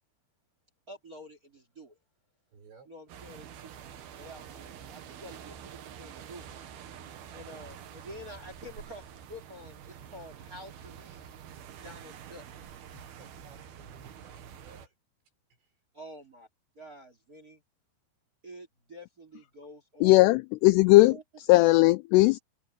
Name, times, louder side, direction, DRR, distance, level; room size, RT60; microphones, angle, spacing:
voice 1, 0.9-2.0 2.9-3.8 4.2-6.4 7.3-11.3 11.8-12.5 15.9-16.5 16.7-17.6 18.4-20.3 20.9-21.2, equal, 25° right, 2.8 m, -48 dB
voice 2, 2.5-2.9 12.9-14.9 15.5-15.8, right 4 dB, 80° right, 8.3 m, -56 dB
sound 1, 3.1-14.9, right 8 dB, 65° right, 3.5 m, -47 dB
voice 3, 20.0-21.2 21.5-22.4, left 20 dB, 85° left, 2.5 m, -18 dB
omnidirectional pair, 5.1 m